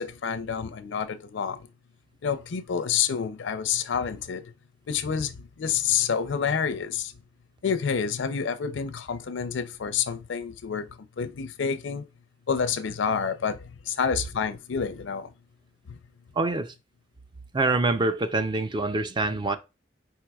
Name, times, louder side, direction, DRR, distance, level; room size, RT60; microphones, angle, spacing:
voice 1, 0.0-1.7 2.2-4.4 4.9-7.1 7.6-10.9 11.2-12.0 12.5-15.3 15.9-16.0, left 7 dB, 80° left, 0.5 m, -28 dB
voice 2, 16.4-16.7 17.5-19.6, right 2 dB, 25° right, 0.4 m, -25 dB
4.6 x 4.5 x 2.3 m
head